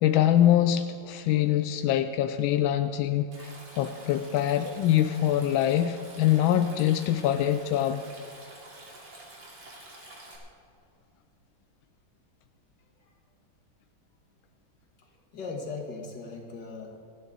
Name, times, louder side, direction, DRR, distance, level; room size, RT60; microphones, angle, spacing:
voice 1, 0.0-8.0, left 11 dB, 90° left, 9 dB, 1.4 m, -24 dB
Stream, 3.3-10.4, right 2 dB, 85° right, 3.4 m, -48 dB
voice 2, 15.0-17.0, left 4 dB, 60° left, 1 dB, 2.4 m, -39 dB
27.5 x 9.3 x 3.9 m, 2.6 s
omnidirectional pair, 2.1 m